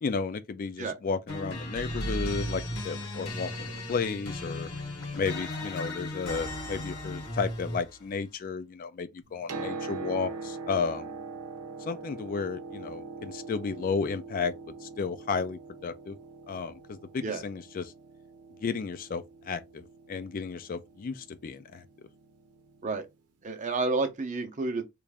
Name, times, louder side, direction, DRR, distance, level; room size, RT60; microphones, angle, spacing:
voice 1, 0.0-4.7 5.1-11.1 11.8-14.5 14.8-16.2 16.5-17.9 18.6-21.8, left 5 dB, 40° left, 0.3 m, -33 dB
sound 1, 1.3-8.0, left 1 dB, 75° left, 1.8 m, -35 dB
Piano, 9.2-23.0 24.1-24.2, right 4 dB, 90° right, 0.7 m, -43 dB
voice 2, 23.4-24.8, right 3 dB, 35° right, 0.6 m, -30 dB
3.2 x 2.5 x 3.4 m
head